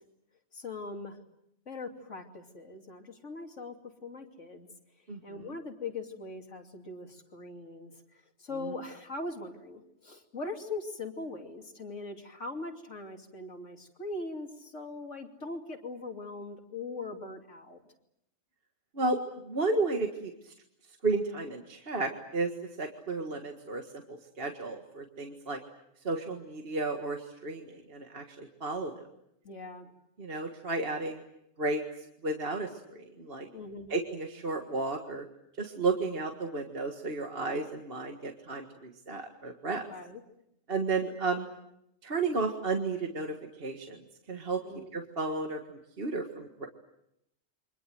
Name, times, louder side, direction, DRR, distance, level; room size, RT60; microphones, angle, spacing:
voice 1, 0.5-1.2 1.7-3.8 4.0-4.7 5.2-7.9 8.4-17.8 29.4-29.9 33.5-34.0 39.7-40.2 44.6-44.9, left 3 dB, 65° left, 4 dB, 3.2 m, -41 dB
voice 2, 19.4-20.3 21.0-22.5 22.8-25.6 26.0-28.9 30.2-31.2 31.6-31.8 32.2-33.5 33.9-35.2 35.6-39.8 40.7-41.5 42.0-44.0 44.3-44.6 44.9-46.7, right 3 dB, 45° right, 3 dB, 2.0 m, -33 dB
29.0 x 25.0 x 7.9 m, 0.80 s
omnidirectional pair, 1.4 m